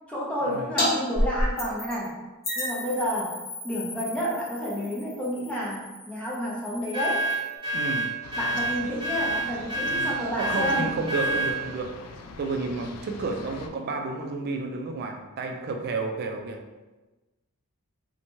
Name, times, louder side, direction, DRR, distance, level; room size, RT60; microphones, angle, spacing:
voice 1, 0.1-2.1 2.5-3.3 3.6-7.2 8.4-10.9 11.3-11.4, equal, 5° left, -5 dB, 0.6 m, -30 dB
sound 1, 0.8-0.9 1.1-2.1 2.4-7.5, left 1 dB, 45° left, 0.9 m, -32 dB
sound 2, 6.9-11.6, right 2 dB, 25° right, 0.8 m, -28 dB
voice 2, 7.7-8.1 9.9-12.0 12.4-16.6, right 3 dB, 45° right, 4 dB, 0.3 m, -31 dB
sound 3, 8.2-13.7, left 3 dB, 80° left, 0.3 m, -43 dB
2.7 x 2.2 x 2.9 m, 1.1 s
head